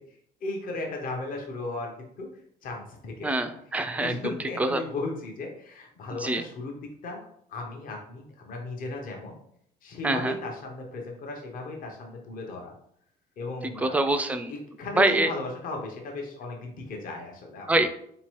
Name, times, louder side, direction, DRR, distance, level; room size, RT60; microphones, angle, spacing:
voice 1, 0.4-1.9 2.2-2.3 2.6-3.4 3.9-6.7 7.0-7.2 7.5-9.4 9.8-12.7 13.4-14.0 14.5-17.8, left 2 dB, 55° left, 1 dB, 0.8 m, -36 dB
voice 2, 3.2-4.8 6.2-6.4 10.0-10.4 13.6-14.5 15.0-15.3 17.7-17.9, right 2 dB, 10° right, 8 dB, 0.3 m, -25 dB
4.0 x 2.9 x 3.0 m, 0.69 s
cardioid pair, 110°, 17 cm